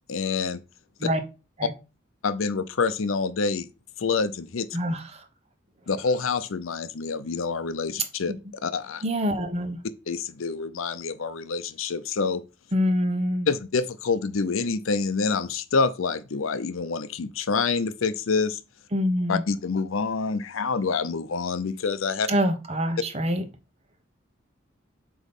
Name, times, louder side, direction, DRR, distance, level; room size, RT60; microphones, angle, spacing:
voice 1, 0.1-0.6 2.2-3.7 4.0-4.7 5.9-8.3 8.6-9.0 10.1-12.4 13.5-18.6 19.3-22.3, left 4 dB, 90° left, 0.6 m, -27 dB
voice 2, 4.7-5.2 8.3-8.4 9.0-9.8 12.7-13.5 18.9-19.4 22.3-23.4, equal, 30° right, 1.0 m, -25 dB
7.9 x 3.1 x 5.4 m
head